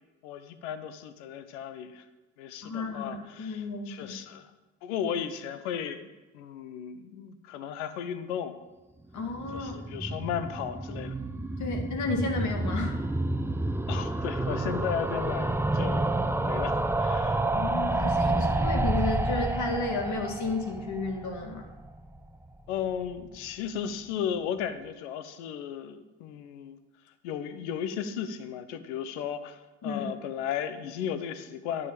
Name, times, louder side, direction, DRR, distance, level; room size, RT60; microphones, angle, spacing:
voice 1, 0.2-2.0 2.4-4.5 4.8-6.1 6.3-8.5 9.5-11.2 13.9-16.1 16.4-17.4 22.7-26.8 27.2-31.9, left 8 dB, 80° left, 11 dB, 1.0 m, -35 dB
voice 2, 2.6-4.1 9.1-9.7 11.6-13.0 17.5-21.7 29.8-30.0, left 3 dB, 55° left, 3 dB, 2.6 m, -32 dB
sound 1, 9.2-22.3 22.5-22.6 22.8-22.9 23.1-23.2, right 2 dB, 5° right, 1.0 m, -29 dB
14.0 x 5.4 x 8.9 m, 1.1 s
hypercardioid pair, 55°, 34 cm